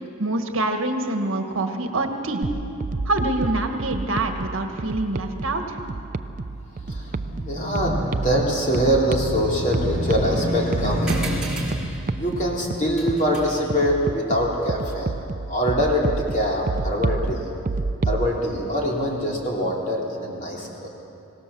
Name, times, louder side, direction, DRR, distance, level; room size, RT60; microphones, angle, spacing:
voice 1, 0.2-2.4 3.0-5.8, right 2 dB, 65° right, 5 dB, 1.7 m, -25 dB
sound 1, 2.4-18.3, right 3 dB, 35° right, 0.4 m, -30 dB
voice 2, 6.7-11.8 12.1-15.1 15.5-17.5 18.0-20.9, equal, 35° left, -2 dB, 3.4 m, -24 dB
sound 2, 11.1-16.0, equal, 5° right, 3.1 m, -36 dB
25.5 x 18.0 x 7.0 m, 2.8 s
head